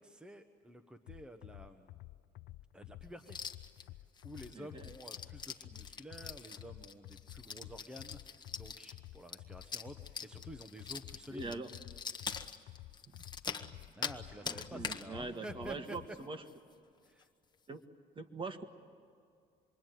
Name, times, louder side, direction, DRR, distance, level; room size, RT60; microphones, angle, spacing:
voice 1, 0.0-2.0 2.7-3.5 4.2-11.5 13.9-16.0 17.0-17.3, equal, 5° right, 7 dB, 1.2 m, -50 dB
sound 1, 1.1-16.1, left 16 dB, 80° left, 0.6 m, -52 dB
sound 2, 3.2-3.8 4.2-14.2 14.5-15.1 15.5-15.6 15.9-16.2 16.5-16.6 17.1-17.2, left 5 dB, 25° left, 1.3 m, -43 dB
voice 2, 4.5-4.9 11.3-11.7 13.2-13.3 13.5-13.9 14.4-16.4 17.7-17.8 18.2-18.6, right 3 dB, 30° right, 7 dB, 1.8 m, -43 dB
26.5 x 22.5 x 9.3 m, 2.3 s
cardioid pair, 110°, 17 cm